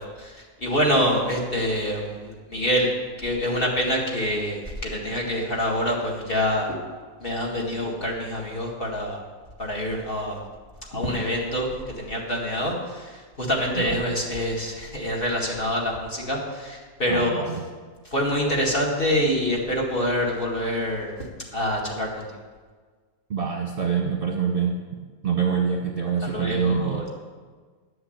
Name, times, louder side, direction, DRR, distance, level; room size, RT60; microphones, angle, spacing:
voice 1, 0.0-2.9 3.2-6.7 7.2-9.2 9.6-10.4 10.9-17.4 18.0-21.1 21.5-22.3 26.2-27.1, equal, 30° left, -2 dB, 2.2 m, -26 dB
voice 2, 17.1-17.6 23.3-24.7 25.2-27.1, right 6 dB, 35° right, 0 dB, 1.1 m, -25 dB
11.0 x 7.8 x 8.0 m, 1.5 s
omnidirectional pair, 2.0 m